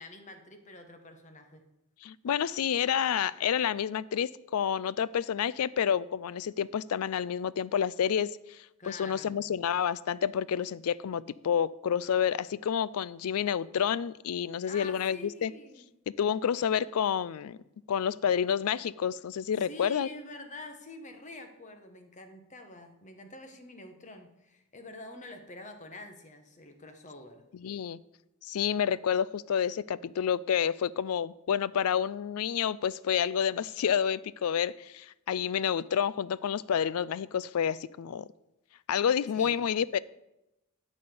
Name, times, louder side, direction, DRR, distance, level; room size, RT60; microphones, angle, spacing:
voice 1, 0.0-1.6 8.8-9.3 14.6-15.9 19.6-27.4 39.3-39.6, left 2 dB, 35° left, 6 dB, 1.2 m, -47 dB
voice 2, 2.0-8.6 8.8-15.5 16.2-17.6 17.9-20.1 27.6-28.0 28.5-38.3 38.9-40.0, left 8 dB, 80° left, 19 dB, 0.4 m, -29 dB
11.0 x 4.3 x 7.9 m, 0.88 s
head